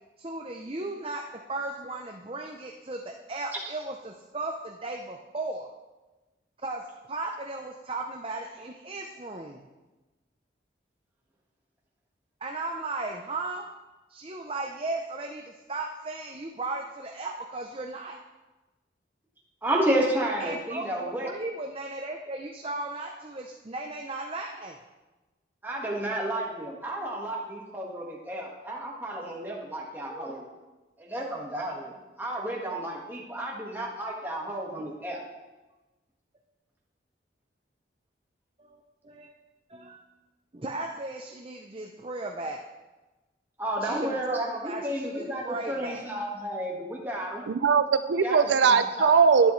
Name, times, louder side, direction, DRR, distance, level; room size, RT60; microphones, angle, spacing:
voice 1, 0.2-1.2 1.5-5.7 6.6-6.8 7.1-9.6 12.4-13.7 14.1-18.2 20.4-20.9 21.2-24.8 38.6-39.3 39.7-40.0 40.5-42.6 43.8-46.0, right 2 dB, 30° right, 1 dB, 0.6 m, -36 dB
voice 2, 19.6-21.3 25.6-30.4 31.0-31.9 32.2-35.2 43.6-47.4 48.2-49.2, right 1 dB, 10° right, -3 dB, 1.6 m, -31 dB
voice 3, 47.5-49.5, right 5 dB, 75° right, 10 dB, 0.4 m, -20 dB
11.5 x 10.5 x 3.2 m, 1.1 s
head